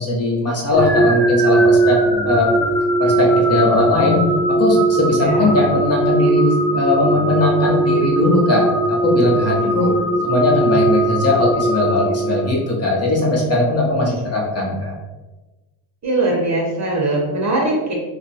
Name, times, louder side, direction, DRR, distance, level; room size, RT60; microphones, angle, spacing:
voice 1, 0.0-2.0 2.2-2.5 3.0-4.2 4.6-9.9 10.2-14.9, left 2 dB, 30° left, -3 dB, 0.8 m, -19 dB
sound 1, 0.7-12.7, right 2 dB, 5° left, 0.3 m, -19 dB
voice 2, 9.6-9.9 14.0-14.1 16.0-17.9, right 2 dB, 35° right, -2 dB, 0.9 m, -21 dB
2.5 x 2.1 x 4.0 m, 1.2 s
cardioid pair, 110°, 49 cm